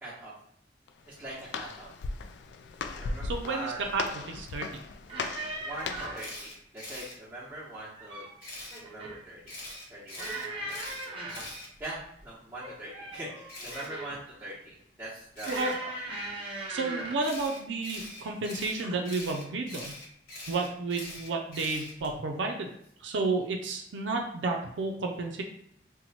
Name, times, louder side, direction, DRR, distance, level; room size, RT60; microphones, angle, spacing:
voice 1, 0.0-0.3 1.1-1.9 2.9-3.8 5.6-8.3 8.8-9.5 9.9-11.2 11.8-15.9, right 1 dB, 10° right, -12 dB, 0.9 m, -42 dB
Walk footsteps, 0.9-6.3, left 4 dB, 75° left, 0.3 m, -38 dB
voice 2, 3.2-4.8 15.5-15.7 16.7-19.9 20.5-22.7 23.0-25.4, right 3 dB, 85° right, 2 dB, 0.4 m, -31 dB
sound 1, 5.1-6.3 7.8-8.4 8.7-9.2 10.2-11.6 12.6-14.2 15.4-17.3 18.2-18.5 18.8-19.0, right 2 dB, 30° right, 0.6 m, -39 dB
Camera, 6.2-7.1 8.4-8.8 9.5-12.2 13.5-13.9 15.4-15.7 17.2-22.1, left 1 dB, 50° left, 1.1 m, -43 dB
2.9 x 2.1 x 4.0 m, 0.71 s
head